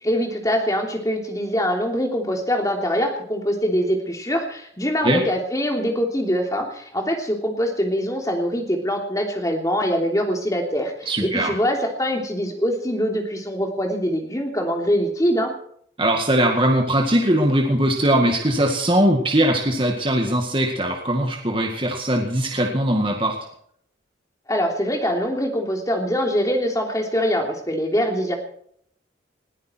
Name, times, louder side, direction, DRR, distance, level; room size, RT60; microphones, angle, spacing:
voice 1, 0.0-15.5 24.5-28.3, equal, 20° left, 2 dB, 3.1 m, -23 dB
voice 2, 11.1-11.5 16.0-23.4, right 1 dB, 25° right, 1 dB, 2.0 m, -20 dB
20.5 x 14.5 x 4.6 m, 0.66 s
head